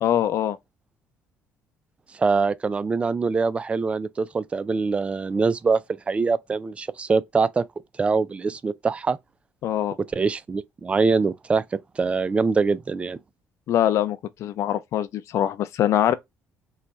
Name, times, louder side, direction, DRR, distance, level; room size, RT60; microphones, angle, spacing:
voice 1, 0.0-0.6 9.6-10.0 13.7-16.1, left 11 dB, 65° left, 0.5 m, -23 dB
voice 2, 2.2-5.8 6.1-7.6 8.0-9.2 10.1-13.2, right 4 dB, 20° right, 0.3 m, -23 dB
3.9 x 2.2 x 3.1 m
cardioid pair, 110°, 5 cm